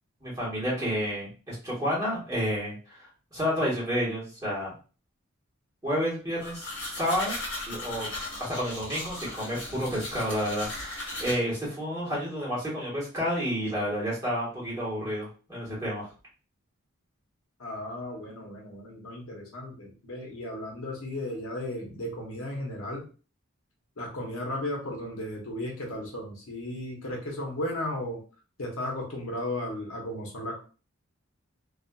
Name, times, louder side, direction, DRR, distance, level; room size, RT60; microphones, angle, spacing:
voice 1, 0.2-4.7 5.8-7.4 7.7-8.1 8.4-16.1, equal, 15° right, -8 dB, 1.2 m, -30 dB
sound 1, 6.4-11.3, left 2 dB, 55° left, 1.1 m, -37 dB
voice 2, 17.6-23.1 24.0-28.2 28.6-30.6, left 1 dB, 70° left, -1 dB, 0.8 m, -35 dB
2.5 x 2.4 x 2.2 m, 0.36 s
head